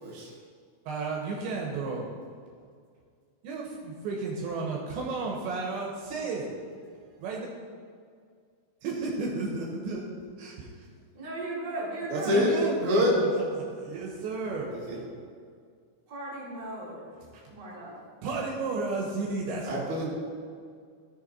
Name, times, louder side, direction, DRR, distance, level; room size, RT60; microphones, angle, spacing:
voice 1, 0.9-2.0 3.4-6.5 7.2-7.5 8.8-10.0 10.4-10.9 12.2-13.4 13.8-15.0 17.2-17.4 18.2-19.8, right 3 dB, 70° right, -2 dB, 3.1 m, -33 dB
voice 2, 11.1-12.4 16.1-17.1 17.5-17.9, right 2 dB, 25° right, -7 dB, 2.8 m, -36 dB
voice 3, 12.1-12.5 12.8-13.1 14.7-15.0 19.6-20.1, left 1 dB, 55° right, -5 dB, 1.5 m, -26 dB
15.0 x 6.8 x 4.2 m, 2.1 s
omnidirectional pair, 5.7 m